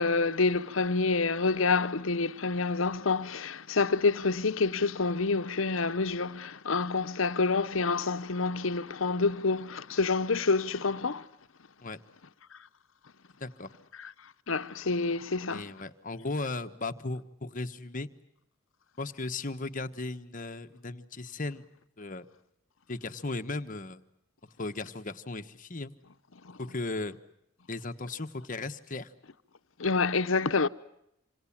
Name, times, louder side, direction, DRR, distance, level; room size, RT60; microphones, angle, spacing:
voice 1, 0.0-11.3 14.0-14.1 14.5-15.6 29.8-30.7, left 4 dB, 75° left, 0.9 m, -27 dB
voice 2, 13.4-13.7 15.5-18.1 19.0-21.7 22.0-22.3 22.9-24.0 24.6-25.9 26.6-27.2 27.7-29.1, left 2 dB, 40° left, 1.3 m, -36 dB
27.0 x 27.0 x 7.4 m
head